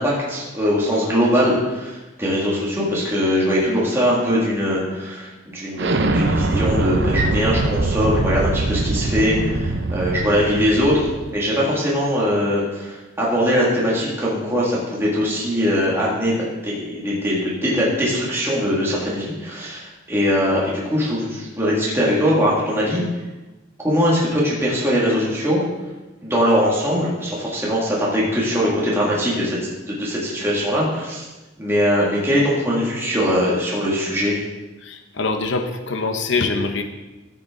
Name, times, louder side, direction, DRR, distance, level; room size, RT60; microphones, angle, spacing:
voice 1, 0.0-23.0 23.8-25.6 26.2-29.6 29.9-31.2 31.6-34.4, equal, 15° right, -6 dB, 2.1 m, -21 dB
Explosion, 5.8-11.3, right 2 dB, 65° right, 0.7 m, -22 dB
voice 2, 34.8-36.8, left 3 dB, 65° left, 6 dB, 0.8 m, -24 dB
15.0 x 6.5 x 3.8 m, 1.1 s
head